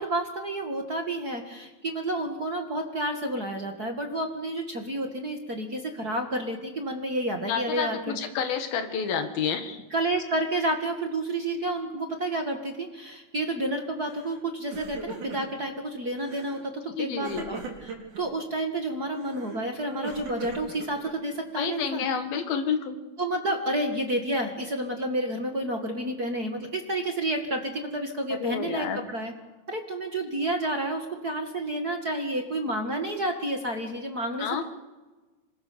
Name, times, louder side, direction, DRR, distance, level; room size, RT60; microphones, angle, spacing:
voice 1, 0.0-8.2 9.9-22.0 23.2-29.3 29.7-34.6, right 1 dB, 35° right, 3 dB, 1.9 m, -30 dB
voice 2, 7.5-9.8 17.0-17.5 21.6-23.0 28.4-29.0 34.4-34.6, left 7 dB, 85° left, 7 dB, 3.6 m, -29 dB
Crying sobbing, 14.1-14.4 14.6-15.7 16.2-16.6 17.2-18.2 19.1-21.4, right 4 dB, 55° right, 5.2 m, -40 dB
27.0 x 24.0 x 6.9 m, 1.2 s
omnidirectional pair, 4.1 m